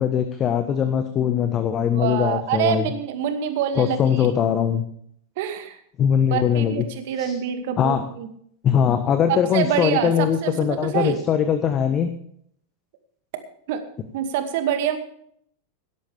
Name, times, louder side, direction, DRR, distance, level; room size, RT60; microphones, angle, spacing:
voice 1, 0.0-2.9 3.7-4.9 6.0-6.8 7.2-7.3 7.8-8.0 8.6-12.1, left 8 dB, 30° left, 9 dB, 1.2 m, -21 dB
voice 2, 1.9-4.3 5.4-5.8 6.3-8.3 9.3-11.2 13.7-13.8 14.1-15.0, right 9 dB, 50° right, 7 dB, 2.2 m, -26 dB
17.5 x 13.0 x 3.5 m, 0.65 s
figure-of-eight pair, 90°, 0 cm